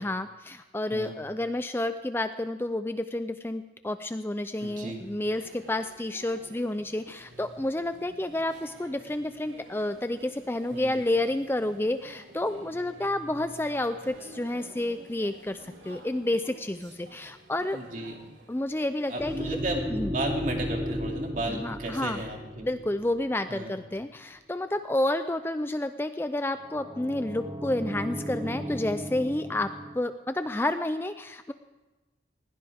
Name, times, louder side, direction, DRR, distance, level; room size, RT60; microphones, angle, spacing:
voice 1, 0.0-17.8 18.5-19.6 19.9-20.1 21.5-22.2 22.6-31.5, left 1 dB, 10° left, 10 dB, 0.4 m, -30 dB
voice 2, 4.6-5.0 10.7-11.0 17.7-18.2 19.1-22.7 23.5-23.7, right 1 dB, 45° right, 1 dB, 2.6 m, -34 dB
sound 1, 4.6-19.7, right 1 dB, 85° right, 3.2 m, -51 dB
sound 2, 19.2-23.6 26.6-30.0, equal, 15° right, 1.0 m, -35 dB
20.5 x 16.5 x 3.5 m, 1.2 s
head